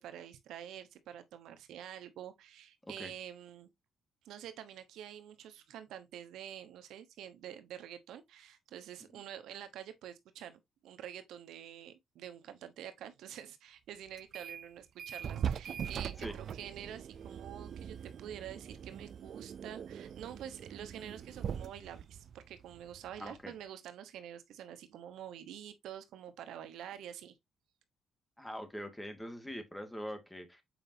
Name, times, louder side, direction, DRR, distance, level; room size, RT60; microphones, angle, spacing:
voice 1, 0.0-3.7 4.2-27.3, right 10 dB, 80° right, 1.1 m, -47 dB
sound 1, 14.2-14.7 15.0-23.5, right 8 dB, 60° right, 0.4 m, -42 dB
voice 2, 23.2-23.5 28.4-30.6, equal, 10° left, 2.1 m, -43 dB
7.6 x 5.1 x 2.8 m
cardioid pair, 90°, 0 cm